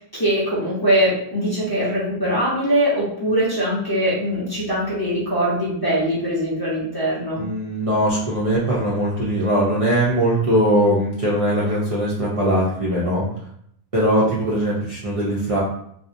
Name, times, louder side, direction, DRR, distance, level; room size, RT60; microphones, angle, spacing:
voice 1, 0.0-7.4, equal, 25° left, -8 dB, 0.7 m, -22 dB
voice 2, 7.3-13.2 13.9-15.6, right 1 dB, 45° right, -7 dB, 0.5 m, -20 dB
2.6 x 2.0 x 2.5 m, 0.69 s
omnidirectional pair, 1.1 m